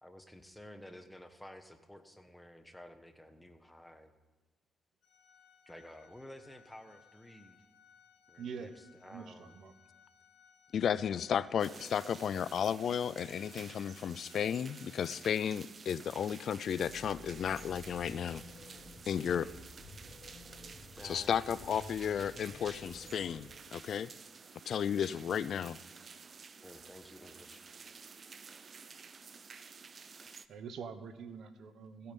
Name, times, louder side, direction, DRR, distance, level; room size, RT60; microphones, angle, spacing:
voice 1, 0.0-4.1 5.7-7.6 8.3-9.6 10.8-11.2 11.7-12.1 20.7-21.8 22.7-22.8 25.0-25.1 26.6-27.7, left 1 dB, 5° left, 7 dB, 1.2 m, -53 dB
Organ, 5.0-15.7, left 8 dB, 75° left, 2.9 m, -64 dB
voice 2, 8.4-8.7 9.1-9.7 30.5-32.1, right 6 dB, 65° right, 10 dB, 1.0 m, -45 dB
voice 3, 10.7-18.4 19.1-19.5 21.0-24.1 24.7-25.8, left 8 dB, 60° left, 18 dB, 0.3 m, -33 dB
sound 1, 11.6-30.5, right 5 dB, 40° right, 0.5 m, -52 dB
sound 2, 16.8-23.4, left 2 dB, 35° left, 2.2 m, -53 dB
15.5 x 8.5 x 5.3 m, 1.3 s
cardioid pair, 90°, 0 cm